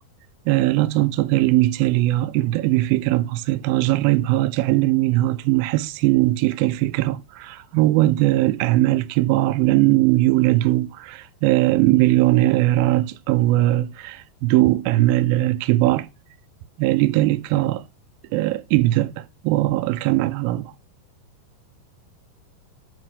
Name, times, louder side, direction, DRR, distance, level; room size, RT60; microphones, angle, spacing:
voice 1, 0.5-16.1 16.8-17.9 18.3-20.7, right 17 dB, 80° right, 2.3 m, -20 dB
7.8 x 4.4 x 6.8 m
omnidirectional pair, 4.2 m